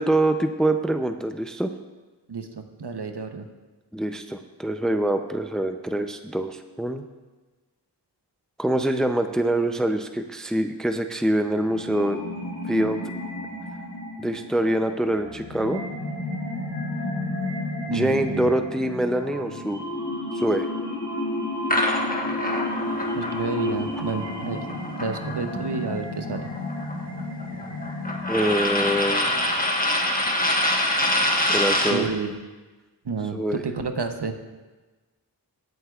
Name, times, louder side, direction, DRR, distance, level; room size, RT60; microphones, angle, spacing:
voice 1, 0.0-1.7 3.9-7.0 8.6-12.2 12.7-13.0 14.2-15.8 17.9-19.8 20.3-20.7 28.3-29.3 31.5-32.1 33.3-33.6, right 1 dB, ahead, 7 dB, 0.5 m, -24 dB
voice 2, 2.3-3.5 17.9-18.5 23.1-24.6 25.0-26.5 31.9-32.3 33.0-34.4, right 4 dB, 70° right, 6 dB, 0.9 m, -30 dB
sound 1, 11.4-29.3, left 2 dB, 45° left, 3.1 m, -32 dB
sound 2, 21.7-25.8 26.1-32.0, left 1 dB, 20° left, 1.3 m, -25 dB
18.5 x 8.0 x 2.4 m, 1.2 s
wide cardioid pair, 50°, 43 cm